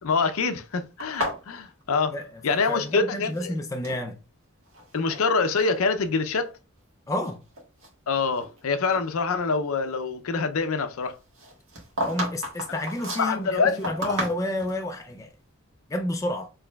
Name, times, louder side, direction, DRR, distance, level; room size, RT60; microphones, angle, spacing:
voice 1, 0.0-2.1 2.4-3.5 4.9-6.5 8.1-11.2 13.2-14.2, left 4 dB, 70° left, 0.5 m, -25 dB
sound 1, 1.0-3.0 3.2-4.0 4.7-5.2 5.5-5.8 6.4-6.5 7.1-8.6 8.9-9.1 11.3-14.8, equal, 65° right, 1.4 m, -34 dB
voice 2, 2.1-4.2 7.1-7.4 12.0-15.3 15.9-16.5, left 1 dB, 15° left, 0.3 m, -30 dB
4.7 x 3.2 x 2.2 m
head